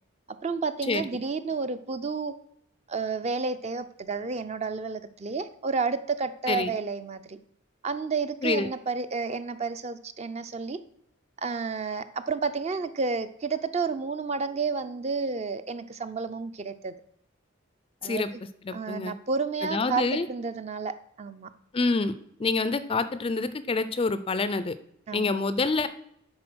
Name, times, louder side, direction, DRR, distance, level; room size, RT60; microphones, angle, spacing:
voice 1, 0.4-2.3 2.9-7.4 7.8-10.8 11.4-16.9 18.0-18.4 18.7-21.5 25.1-25.4, right 4 dB, 30° right, 0.4 m, -31 dB
voice 2, 18.6-19.1 19.7-20.3 21.7-24.8 25.1-25.9, left 3 dB, 25° left, 0.4 m, -27 dB
9.6 x 4.1 x 6.1 m
head